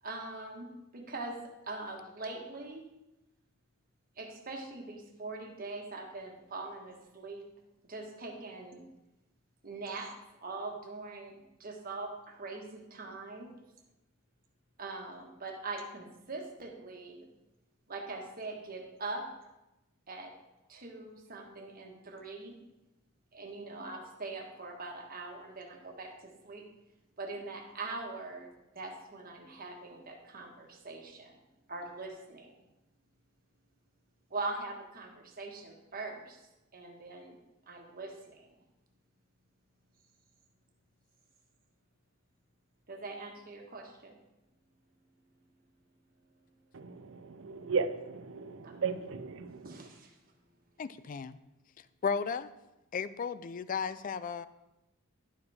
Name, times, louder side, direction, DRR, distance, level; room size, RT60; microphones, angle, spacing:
voice 1, 0.0-1.4 1.7-2.8 4.2-7.4 7.8-8.8 9.6-10.1 10.4-11.3 11.6-13.5 14.8-17.3 17.9-19.2 20.1-20.3 20.7-22.6 23.3-26.6 27.2-28.5 28.7-31.4 31.7-32.6 34.3-36.4 36.7-37.4 37.7-38.6 42.9-44.1 48.6-48.7 49.6-50.2, right 3 dB, 45° right, 1 dB, 1.4 m, -42 dB
voice 2, 46.7-49.9, right 5 dB, 60° right, 11 dB, 0.6 m, -36 dB
voice 3, 50.8-51.4 52.0-52.5 52.9-54.5, left 6 dB, 40° left, 15 dB, 0.3 m, -34 dB
11.0 x 5.0 x 4.8 m, 0.96 s
head